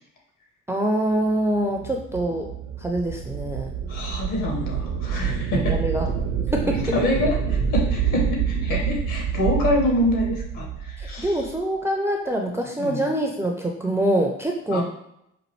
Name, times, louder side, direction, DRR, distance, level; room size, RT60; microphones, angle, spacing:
voice 1, 0.7-2.5 2.8-3.7 5.5-6.1 6.5-6.9 11.0-14.8, right 1 dB, 5° right, 1 dB, 0.5 m, -25 dB
sound 1, 1.5-11.6, right 7 dB, 60° right, 0.6 m, -27 dB
voice 2, 3.9-5.8 6.6-11.3 12.8-13.0 14.7-14.8, left 1 dB, 55° left, -1 dB, 1.4 m, -26 dB
5.2 x 2.5 x 3.1 m, 0.79 s
figure-of-eight pair, 50°, 37 cm